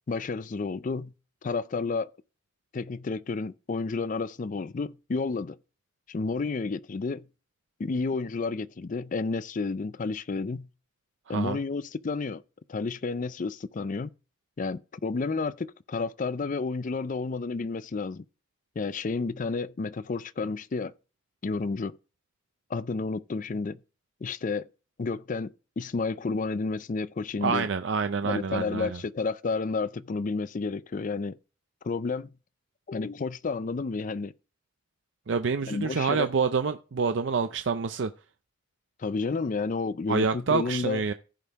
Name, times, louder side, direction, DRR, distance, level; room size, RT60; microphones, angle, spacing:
voice 1, 0.1-1.1 1.4-2.1 2.7-5.6 6.1-7.3 7.8-10.7 11.3-12.4 12.7-14.1 14.6-18.2 18.8-20.9 21.4-22.0 22.7-23.8 24.2-24.7 25.0-27.7 28.2-31.4 31.8-32.3 32.9-34.3 35.7-36.3 39.0-41.0, left 4 dB, 40° left, 0.4 m, -31 dB
voice 2, 11.3-11.6 27.4-29.0 35.3-38.1 40.1-41.1, right 5 dB, 60° right, 0.5 m, -27 dB
15.0 x 5.3 x 3.5 m
head